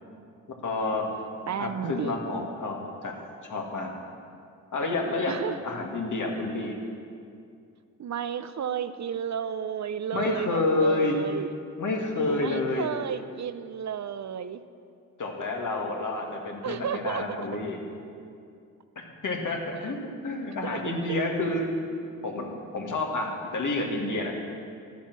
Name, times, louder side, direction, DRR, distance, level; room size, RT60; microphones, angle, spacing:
voice 1, 0.6-1.0 1.6-3.1 3.4-3.9 4.7-6.8 10.1-11.2 11.8-12.9 15.2-17.8 19.0-21.7 22.2-24.3, left 2 dB, 60° left, 0 dB, 2.1 m, -29 dB
voice 2, 1.5-2.5 5.3-5.6 8.0-11.6 12.4-14.6 16.6-17.4 19.7-20.0 20.6-20.8 21.1-21.2, right 8 dB, 55° right, 12 dB, 0.7 m, -33 dB
12.5 x 8.3 x 6.1 m, 2.4 s
cardioid pair, 65°, 34 cm